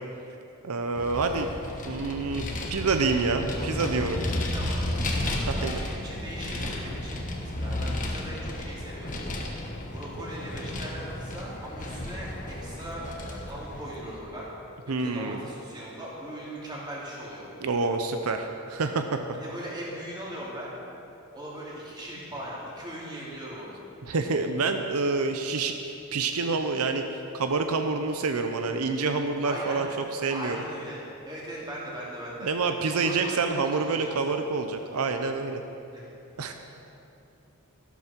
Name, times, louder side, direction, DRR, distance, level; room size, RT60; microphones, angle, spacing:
voice 1, 0.6-1.5 1.9-4.2 5.3-5.8 14.9-15.4 17.6-19.2 24.0-27.0 27.3-29.9 30.1-30.6 32.4-35.6 36.4-36.5, right 4 dB, 85° right, 6 dB, 0.7 m, -27 dB
Vehicle, 0.9-14.2, left 1 dB, 35° left, 1.3 m, -33 dB
voice 2, 4.5-4.9 5.5-9.2 9.9-14.5 14.9-17.5 19.4-20.7 21.3-23.8 29.4-29.8 30.3-32.5 32.9-34.4 35.9-36.1, equal, 20° right, -6 dB, 3.0 m, -39 dB
13.5 x 12.0 x 4.5 m, 2.8 s
head